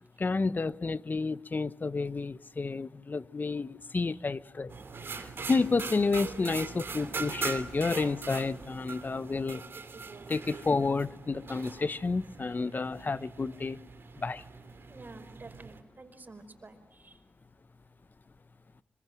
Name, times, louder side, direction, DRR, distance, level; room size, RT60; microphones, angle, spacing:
voice 1, 0.2-4.7 5.1-9.6 10.3-13.8 14.2-14.4, left 4 dB, 45° left, 1.0 m, -30 dB
sound 1, 4.7-15.8, right 4 dB, 65° right, 2.9 m, -41 dB
voice 2, 14.9-17.2, right 3 dB, 45° right, 5.0 m, -50 dB
26.0 x 23.5 x 9.3 m
cardioid pair, 45°, 4 cm